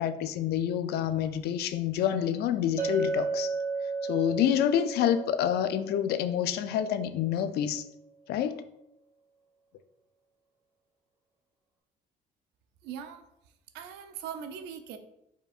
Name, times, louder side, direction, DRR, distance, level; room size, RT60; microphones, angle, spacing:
voice 1, 0.0-3.5 4.0-7.8 8.3-8.7, left 10 dB, 70° left, 12 dB, 0.4 m, -28 dB
Chink clink, 2.8-7.2, right 4 dB, 20° right, 1.4 m, -34 dB
voice 2, 12.8-13.2 13.7-15.0, right 8 dB, 85° right, 9 dB, 0.5 m, -40 dB
5.0 x 4.3 x 2.4 m, 0.84 s
cardioid pair, 110°, 17 cm